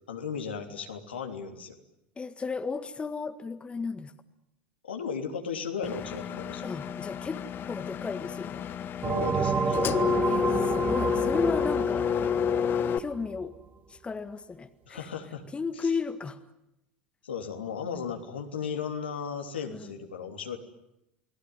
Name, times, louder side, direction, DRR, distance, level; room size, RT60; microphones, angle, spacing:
voice 1, 0.1-1.8 4.8-6.8 9.0-9.8 14.8-15.4 15.8-15.9 17.2-20.6, left 6 dB, 80° left, 4 dB, 3.2 m, -35 dB
voice 2, 2.2-4.1 6.6-8.7 10.2-12.1 13.0-13.6 13.9-15.0 15.5-16.4 19.7-19.9, left 4 dB, 20° left, 9 dB, 1.7 m, -34 dB
Engine, 5.8-13.0, left 7 dB, 40° left, 1.5 m, -29 dB
sound 1, 9.0-13.4, right 5 dB, 30° right, 2.9 m, -30 dB
29.5 x 19.5 x 9.7 m, 0.86 s
figure-of-eight pair, 75°, 6 cm